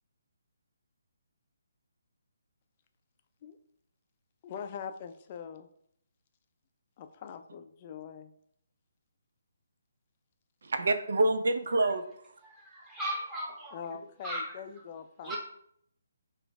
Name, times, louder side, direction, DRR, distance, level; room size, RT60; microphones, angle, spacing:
voice 1, 4.4-5.7 7.0-8.3 13.7-15.3, left 7 dB, 35° left, 8 dB, 0.4 m, -43 dB
voice 2, 10.6-12.3 15.3-15.4, right 2 dB, 65° right, 9 dB, 0.5 m, -28 dB
voice 3, 12.4-13.8 14.2-14.6 15.2-15.4, equal, 10° right, -4 dB, 1.1 m, -37 dB
5.1 x 2.5 x 3.4 m, 0.70 s
figure-of-eight pair, 150°, 0 cm